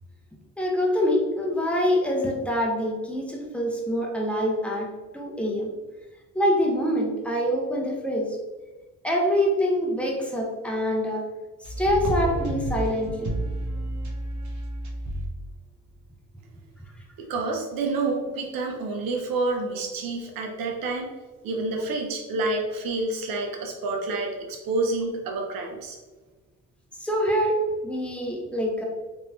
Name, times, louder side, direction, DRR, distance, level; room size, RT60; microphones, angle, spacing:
voice 1, 0.6-5.7 6.3-8.4 9.0-11.2 11.6-13.5 27.0-28.8, equal, 5° left, -2 dB, 1.0 m, -25 dB
sound 1, 11.6-15.3 15.9-16.0, right 2 dB, 55° right, 1.0 m, -30 dB
voice 2, 17.2-21.1 21.4-26.0, right 3 dB, 80° right, 2 dB, 0.9 m, -28 dB
3.9 x 3.1 x 2.7 m, 1.3 s
cardioid pair, 75°, 34 cm